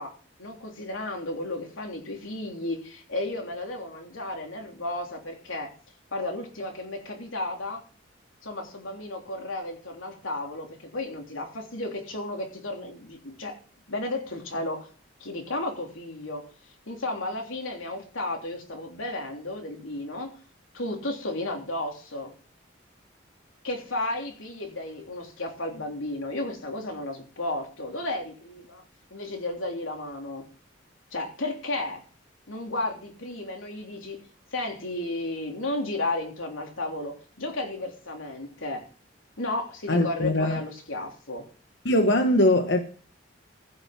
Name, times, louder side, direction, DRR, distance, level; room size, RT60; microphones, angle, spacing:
voice 1, 0.0-5.7 6.1-7.8 8.4-13.6 13.9-14.9 15.2-16.4 16.9-20.4 20.7-22.3 23.6-28.8 29.1-30.5 31.1-32.0 32.5-34.2 34.5-38.9 39.4-41.4, left 2 dB, 90° left, 3.5 m, -33 dB
voice 2, 39.9-40.6 41.8-42.8, left 1 dB, 60° left, 1.2 m, -21 dB
15.5 x 6.5 x 6.1 m
head